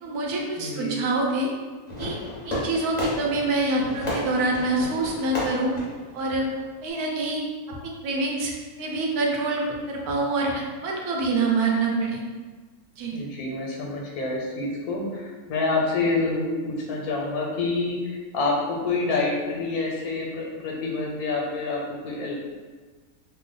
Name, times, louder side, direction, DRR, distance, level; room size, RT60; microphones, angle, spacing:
voice 1, 0.0-1.5 2.0-2.2 2.4-5.7 6.1-6.5 6.8-7.4 7.7-7.8 8.0-8.5 8.8-12.2 12.9-13.1, right 2 dB, 85° right, -1 dB, 1.2 m, -26 dB
voice 2, 0.6-1.0 13.1-22.3, left 3 dB, 90° left, -1 dB, 1.2 m, -27 dB
Fireworks, 1.9-6.9, left 1 dB, 30° left, 1.0 m, -33 dB
3.0 x 2.1 x 3.9 m, 1.4 s
omnidirectional pair, 1.6 m